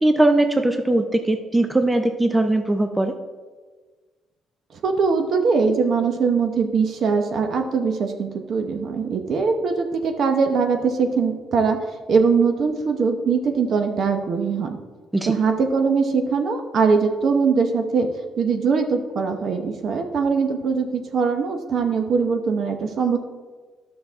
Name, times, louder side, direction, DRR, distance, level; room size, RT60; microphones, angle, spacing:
voice 1, 0.0-3.1 15.1-15.3, right 1 dB, 10° right, 7 dB, 0.5 m, -20 dB
voice 2, 4.8-11.8 12.1-14.8 15.3-18.1 18.4-23.2, right 5 dB, 55° right, 6 dB, 1.0 m, -21 dB
12.0 x 6.2 x 3.6 m, 1.4 s
cardioid pair, 120°, 0 cm